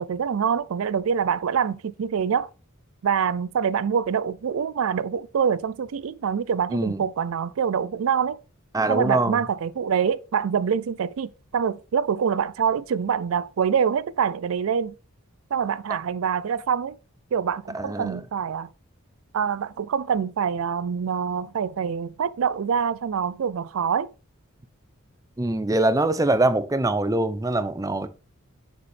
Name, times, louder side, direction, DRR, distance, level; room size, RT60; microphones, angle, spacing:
voice 1, 0.0-2.5 3.0-8.4 8.9-14.9 15.5-17.0 17.3-18.7 19.3-24.1, right 7 dB, 70° right, 0.4 m, -25 dB
voice 2, 6.7-7.0 8.7-9.4 17.7-18.2 25.4-28.1, right 2 dB, 15° right, 0.6 m, -23 dB
7.0 x 6.8 x 3.4 m
head